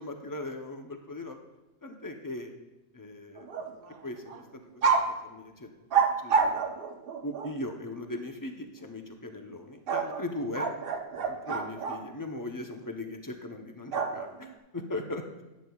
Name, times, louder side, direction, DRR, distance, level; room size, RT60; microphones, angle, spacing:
voice 1, 0.0-1.4 1.8-2.5 2.9-3.7 4.0-4.6 4.9-5.7 6.2-6.7 7.2-10.7 11.1-15.2, left 2 dB, 20° left, 4 dB, 0.6 m, -39 dB
sound 1, 3.4-4.0 4.3-4.4 4.8-5.1 5.9-7.5 9.9-12.0 13.9-14.5, right 5 dB, 50° right, 0.8 m, -28 dB
12.5 x 9.7 x 2.4 m, 1.1 s
omnidirectional pair, 1.5 m